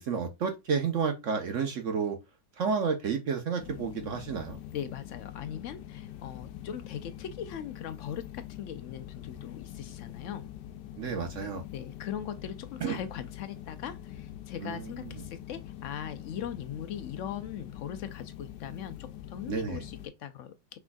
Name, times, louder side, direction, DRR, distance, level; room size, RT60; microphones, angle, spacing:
voice 1, 0.0-2.2 2.6-4.6 11.0-11.6 12.8-13.0 14.6-14.8 19.5-19.8, right 6 dB, 60° right, 0.9 m, -31 dB
sound 1, 3.6-20.1, left 12 dB, 90° left, 1.2 m, -44 dB
voice 2, 4.7-10.5 11.7-20.8, left 9 dB, 70° left, 0.7 m, -40 dB
6.1 x 3.5 x 2.2 m
omnidirectional pair, 1.8 m